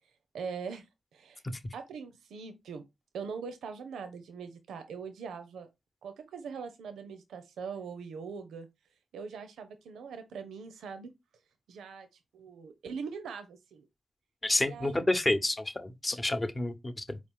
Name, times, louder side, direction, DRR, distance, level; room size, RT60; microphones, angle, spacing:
voice 1, 0.3-0.9 1.1-1.4 1.7-2.8 3.1-5.7 6.0-8.7 9.1-11.1 11.7-12.1 12.3-13.9 14.6-15.1, right 5 dB, 85° right, 0.5 m, -41 dB
voice 2, 14.4-17.2, left 2 dB, 25° left, 0.8 m, -29 dB
4.4 x 2.4 x 3.6 m
supercardioid pair, 45°, 0 cm